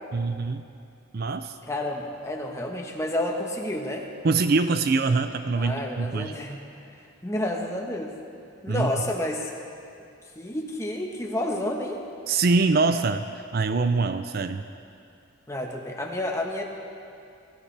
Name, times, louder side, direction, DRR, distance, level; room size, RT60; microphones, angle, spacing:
voice 1, 0.1-0.6 1.1-1.5 4.2-6.3 8.7-8.9 12.3-14.7, right 3 dB, 50° right, 9 dB, 0.5 m, -24 dB
voice 2, 1.6-4.1 5.5-7.0 7.2-8.1 8.6-9.5 10.0-10.1 10.3-12.0 15.5-16.6, left 1 dB, 15° left, 1 dB, 1.2 m, -30 dB
23.0 x 14.0 x 3.4 m, 2.5 s
head